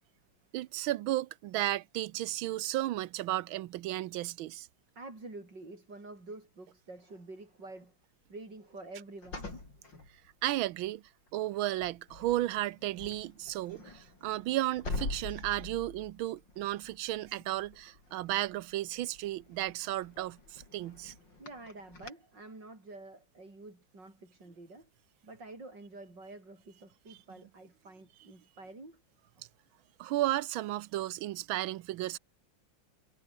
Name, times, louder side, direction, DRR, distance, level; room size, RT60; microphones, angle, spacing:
voice 1, 0.5-4.7 10.4-11.0 11.3-21.1 27.1-27.2 30.0-32.2, right 15 dB, 90° right, 1.5 m, -34 dB
voice 2, 5.0-8.0 8.3-9.5 21.3-24.9 25.2-29.0, right 2 dB, 60° right, 7.4 m, -48 dB
sound 1, 9.2-10.8 11.3-11.6 11.8-22.1, left 3 dB, 65° left, 6.5 m, -45 dB
omnidirectional pair, 2.1 m